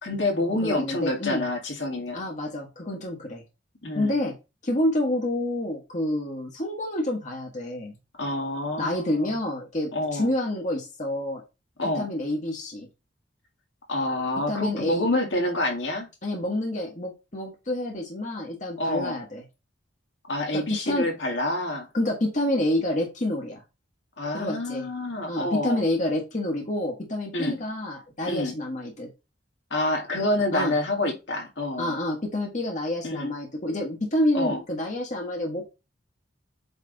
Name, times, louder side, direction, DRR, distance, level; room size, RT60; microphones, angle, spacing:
voice 1, 0.0-2.2 3.8-4.1 8.2-9.3 9.9-10.3 11.8-12.1 13.9-16.1 18.8-19.2 20.3-21.9 24.2-25.8 27.3-27.6 28.3-28.5 29.7-32.0 33.0-33.3 34.3-34.6, left 1 dB, 65° left, 1 dB, 1.9 m, -27 dB
voice 2, 0.6-1.4 2.1-3.4 3.9-4.3 4.6-8.0 8.8-11.4 11.9-12.9 14.5-15.1 16.2-19.4 20.5-21.1 21.9-23.6 24.3-24.9 25.3-29.1 30.5-30.7 31.8-35.6, left 1 dB, 40° left, 0 dB, 1.4 m, -28 dB
8.2 x 3.3 x 4.0 m, 0.27 s
head